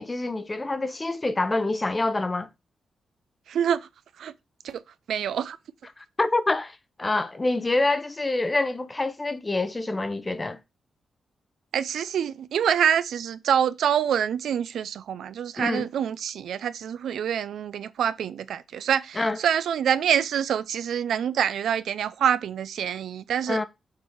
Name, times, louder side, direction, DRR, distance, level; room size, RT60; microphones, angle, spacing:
voice 1, 0.0-2.5 6.0-10.6 15.6-15.9 19.2-19.4 23.5-23.6, left 2 dB, 25° left, 0.8 m, -26 dB
voice 2, 3.5-3.9 4.2-4.3 4.6-4.8 5.1-5.6 11.7-23.6, right 8 dB, 80° right, 0.5 m, -26 dB
6.7 x 3.1 x 5.6 m
cardioid pair, 75°, 0 cm